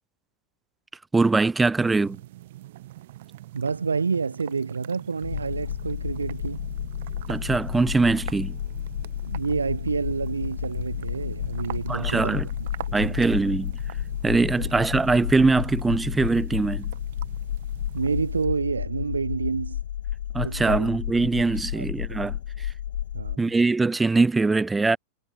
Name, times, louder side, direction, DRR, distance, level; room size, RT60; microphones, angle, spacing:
voice 1, 1.1-2.2 7.3-8.6 11.9-12.5 12.9-13.7 14.2-16.9 20.3-22.7 23.4-25.0, right 3 dB, 10° right, 0.4 m, -22 dB
sound 1, 1.8-18.5, right 15 dB, 55° right, 1.2 m, -44 dB
voice 2, 3.5-6.6 9.3-13.3 14.6-14.8 17.9-19.8 20.4-20.9 21.7-22.3 23.1-23.4, right 5 dB, 75° right, 0.5 m, -29 dB
sound 2, 5.2-23.4, left 10 dB, 60° left, 0.7 m, -32 dB
sound 3, 7.3-15.1, left 4 dB, 10° left, 6.3 m, -58 dB
figure-of-eight pair, 90°, 0 cm